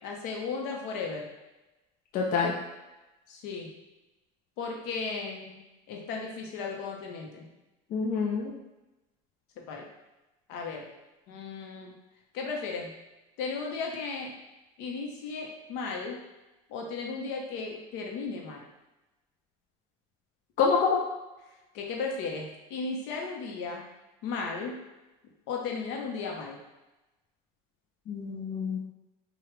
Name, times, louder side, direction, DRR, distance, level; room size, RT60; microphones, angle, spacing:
voice 1, 0.0-1.3 3.3-3.7 4.6-7.5 9.7-9.9 10.5-10.9 11.3-11.9 12.3-12.9 13.4-14.3 14.8-16.2 16.7-18.6 21.7-23.9 24.2-24.8 25.5-26.6, left 4 dB, 70° left, 0 dB, 0.9 m, -35 dB
voice 2, 2.1-2.5 7.9-8.5 20.6-21.0 28.1-28.8, left 5 dB, 50° left, -2 dB, 0.6 m, -26 dB
4.8 x 2.4 x 3.2 m, 1.0 s
cardioid pair, 125°, 18 cm